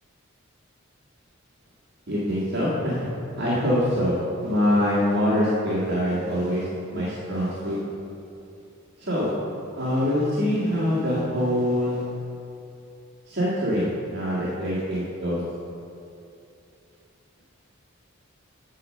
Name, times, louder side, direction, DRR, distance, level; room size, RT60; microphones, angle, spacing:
voice 1, 2.1-3.0 3.4-7.8 9.0-9.3 9.8-12.0 13.3-15.4, equal, 55° right, -8 dB, 1.7 m, -24 dB
8.2 x 5.1 x 6.4 m, 2.7 s
head